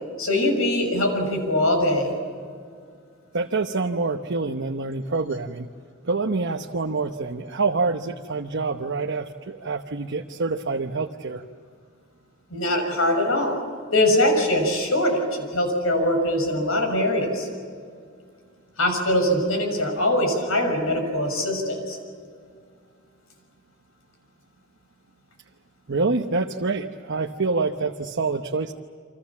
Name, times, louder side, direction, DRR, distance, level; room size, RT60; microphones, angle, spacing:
voice 1, 0.2-2.1 12.5-13.6 13.9-15.2 15.5-17.5 18.8-22.0, left 1 dB, 80° left, 4 dB, 6.4 m, -22 dB
voice 2, 3.3-5.7 6.0-11.4 25.9-28.7, right 3 dB, 60° right, 3 dB, 1.0 m, -26 dB
29.0 x 26.0 x 7.3 m, 2.1 s
head